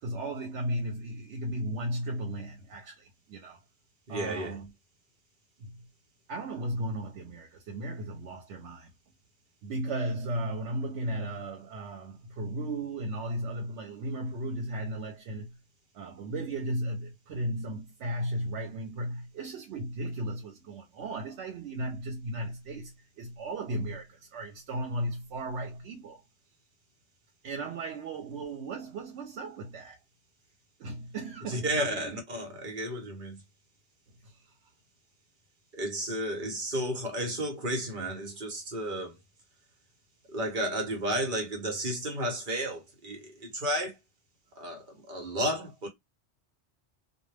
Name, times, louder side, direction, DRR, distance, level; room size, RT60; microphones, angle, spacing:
voice 1, 0.0-3.6 4.1-4.7 5.6-5.8 6.3-8.9 9.6-15.6 15.9-26.2 27.4-30.0 30.8-32.2 34.2-34.4, right 1 dB, 85° right, 0.9 m, -35 dB
voice 2, 4.1-4.6 31.5-33.4 35.7-39.1 40.3-43.9 44.6-45.9, right 1 dB, 50° right, 0.9 m, -32 dB
2.1 x 2.1 x 3.2 m
omnidirectional pair, 1.2 m